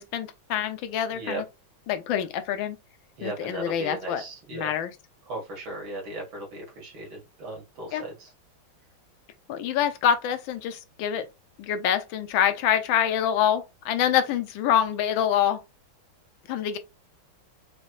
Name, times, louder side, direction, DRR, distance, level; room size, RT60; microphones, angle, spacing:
voice 1, 0.0-1.4 1.9-2.8 3.2-4.2 4.5-4.9 7.9-8.0 9.5-11.2 11.6-15.6 16.5-16.8, left 9 dB, 75° left, 1.4 m, -26 dB
voice 2, 3.2-4.7 5.3-8.3, right 2 dB, 70° right, 2.4 m, -36 dB
5.2 x 3.0 x 2.3 m
omnidirectional pair, 2.2 m